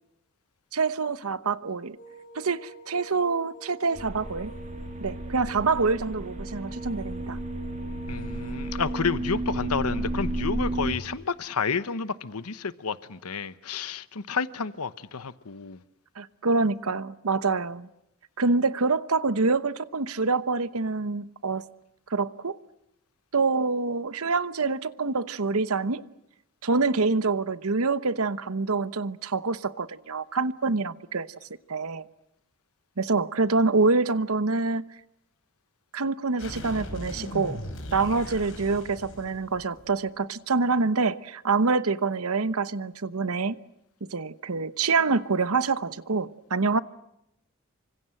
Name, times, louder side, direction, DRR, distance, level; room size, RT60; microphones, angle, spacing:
voice 1, 0.7-2.0 2.3-4.5 5.0-7.4 16.2-17.9 18.4-21.6 22.1-22.6 23.3-26.0 26.6-31.3 31.7-32.0 33.0-34.8 35.9-37.6 37.9-43.6 44.1-46.8, right 4 dB, 80° right, 1.0 m, -26 dB
sound 1, 2.0-9.1, right 2 dB, 40° left, 7.4 m, -46 dB
sound 2, 4.0-10.9, right 1 dB, 35° right, 2.4 m, -33 dB
voice 2, 8.1-15.8, left 5 dB, 90° left, 1.0 m, -30 dB
sound 3, 36.4-40.1, left 1 dB, 60° left, 5.7 m, -38 dB
28.0 x 25.5 x 7.7 m
head